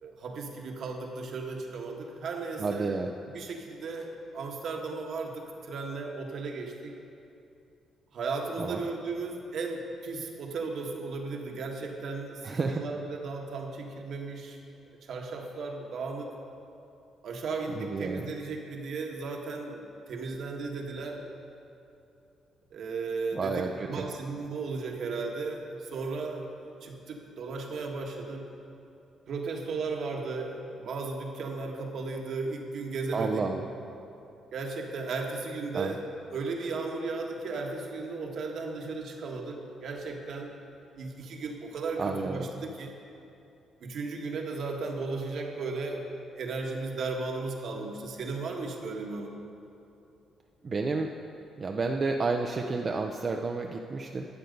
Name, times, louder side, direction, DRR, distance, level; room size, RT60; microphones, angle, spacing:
voice 1, 0.0-3.0 3.3-6.9 8.1-14.6 15.1-16.3 17.2-21.3 22.7-28.5 29.3-33.5 34.5-40.5 40.9-42.9 43.8-49.4, right 3 dB, 65° right, 1 dB, 1.5 m, -35 dB
voice 2, 2.6-3.1 8.6-8.8 12.4-12.8 17.7-18.3 23.3-24.0 33.1-33.6 35.7-35.9 42.0-42.5 50.6-51.1 51.6-54.3, right 4 dB, 40° right, 3 dB, 0.6 m, -30 dB
12.0 x 8.1 x 5.3 m, 2.8 s
cardioid pair, 90°, 0 cm